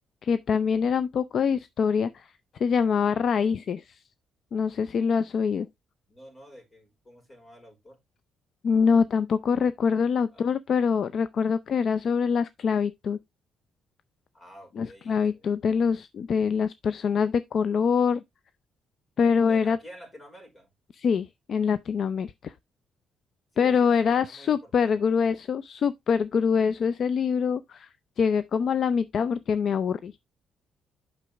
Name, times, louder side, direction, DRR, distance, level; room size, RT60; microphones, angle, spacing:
voice 1, 0.2-2.3 2.6-4.0 4.5-5.7 8.6-13.2 14.8-18.2 19.2-19.8 21.0-22.5 23.6-27.9 28.2-30.1, left 6 dB, 55° left, 0.5 m, -24 dB
voice 2, 6.1-8.0 10.3-10.5 14.3-15.4 19.5-20.7 23.5-25.0, equal, 30° left, 5.1 m, -49 dB
8.5 x 6.1 x 3.4 m
cardioid pair, 90°, 0 cm